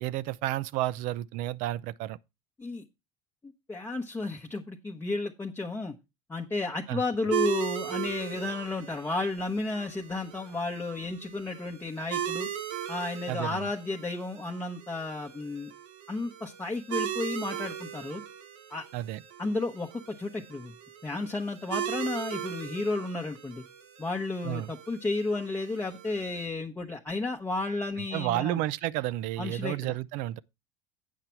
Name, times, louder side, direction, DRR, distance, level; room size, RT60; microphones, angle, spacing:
voice 1, 0.0-2.2 6.9-7.0 13.3-13.7 18.9-19.2 24.4-24.7 28.0-30.4, right 15 dB, 65° right, 0.4 m, -31 dB
voice 2, 3.4-6.0 6.3-12.5 12.9-15.7 16.1-18.2 18.7-18.8 19.4-20.7 21.0-23.6 24.0-28.6 29.4-30.0, left 2 dB, 15° left, 0.8 m, -33 dB
sound 1, 7.3-26.5, right 10 dB, 85° right, 1.4 m, -38 dB
8.3 x 5.8 x 4.4 m
supercardioid pair, 110°, 15 cm